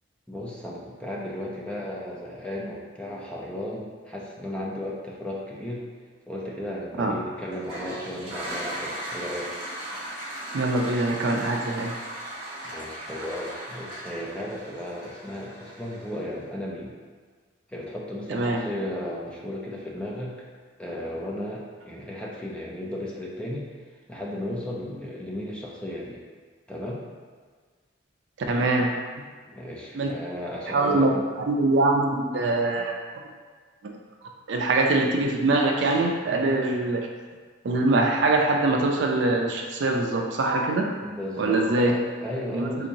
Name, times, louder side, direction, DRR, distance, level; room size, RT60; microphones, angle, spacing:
voice 1, 0.3-5.8 6.3-9.5 12.7-16.9 17.7-20.3 20.8-23.7 24.1-26.2 26.7-27.0 29.5-31.3 41.0-42.9, left 1 dB, 5° left, -4 dB, 0.5 m, -35 dB
Toilet flush, 7.4-16.3, right 1 dB, 25° right, 1.0 m, -37 dB
voice 2, 10.5-11.9 18.3-18.6 28.5-28.9 29.9-30.1 30.7-31.1 31.5-32.9 33.8-33.9 34.5-37.1 37.6-40.9 41.4-41.9 42.5-42.9, right 2 dB, 65° right, 1 dB, 0.4 m, -23 dB
3.6 x 2.9 x 2.6 m, 1.6 s
head